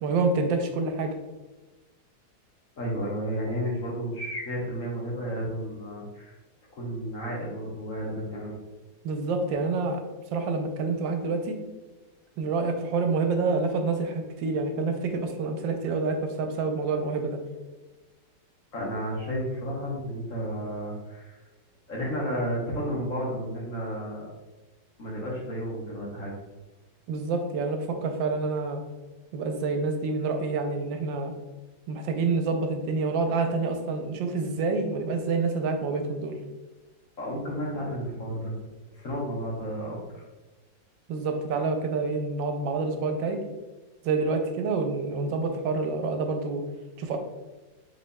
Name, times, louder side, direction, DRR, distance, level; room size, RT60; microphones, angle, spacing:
voice 1, 0.0-1.2 9.0-10.0 10.3-11.6 12.4-17.4 27.1-28.8 29.3-31.3 31.9-36.4 41.1-43.4 44.0-46.7 47.0-47.2, right 4 dB, 90° right, 6 dB, 1.3 m, -27 dB
voice 2, 2.8-6.4 6.7-8.6 18.7-21.4 21.9-24.3 25.0-26.3 37.2-38.5 38.9-40.0, equal, 50° left, -3 dB, 1.2 m, -32 dB
5.1 x 4.0 x 2.2 m, 1.2 s
omnidirectional pair, 2.0 m